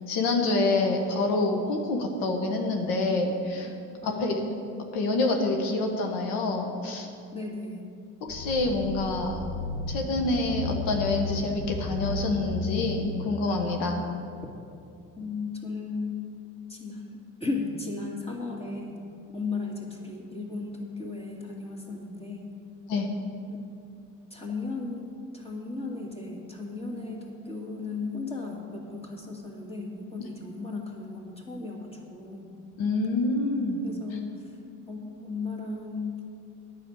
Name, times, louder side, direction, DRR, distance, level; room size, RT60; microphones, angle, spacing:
voice 1, 0.1-3.7 4.2-4.4 4.9-7.1 8.3-9.4 9.9-14.0 22.9-23.1 32.8-33.8, left 2 dB, 90° left, 3 dB, 1.3 m, -27 dB
voice 2, 4.0-4.7 7.3-7.8 15.2-16.2 16.7-19.0 19.3-22.5 23.5-23.6 24.3-32.5 33.8-34.6 34.9-36.2, left 3 dB, 15° left, -1 dB, 2.2 m, -35 dB
sound 1, 8.3-13.3, left 2 dB, 50° left, 1.7 m, -34 dB
9.6 x 6.3 x 8.6 m, 2.5 s
supercardioid pair, 85°, 35 cm